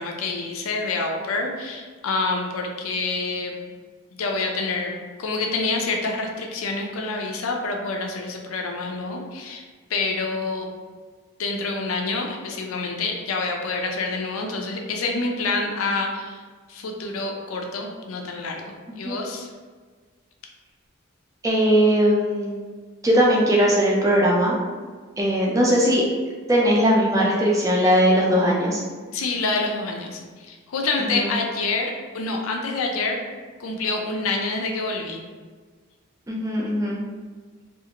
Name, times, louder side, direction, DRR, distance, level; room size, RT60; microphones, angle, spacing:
voice 1, 0.0-3.6 4.2-9.6 9.9-10.7 11.4-16.4 16.7-19.5 29.1-33.2 33.6-35.2, left 3 dB, 75° left, 1 dB, 0.4 m, -27 dB
voice 2, 21.4-22.5 23.0-24.6 25.2-26.0 26.5-28.8 31.1-31.2 36.3-37.0, equal, 15° right, -3 dB, 0.4 m, -19 dB
2.4 x 2.4 x 2.8 m, 1.5 s
head